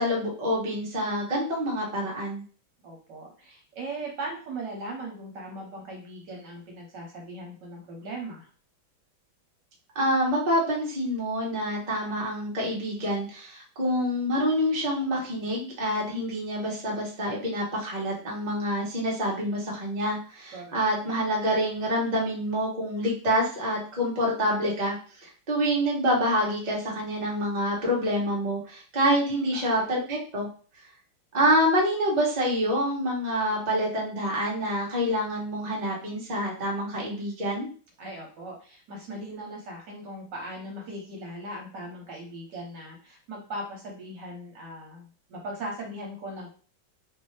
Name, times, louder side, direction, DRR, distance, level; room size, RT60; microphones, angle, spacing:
voice 1, 0.0-2.4 9.9-25.0 25.2-30.5 31.3-37.7, equal, 30° right, -4 dB, 0.9 m, -27 dB
voice 2, 2.8-8.5 20.5-20.8 29.5-29.7 38.0-46.5, right 1 dB, 65° right, 0 dB, 1.4 m, -39 dB
3.3 x 2.6 x 3.2 m, 0.40 s
omnidirectional pair, 2.2 m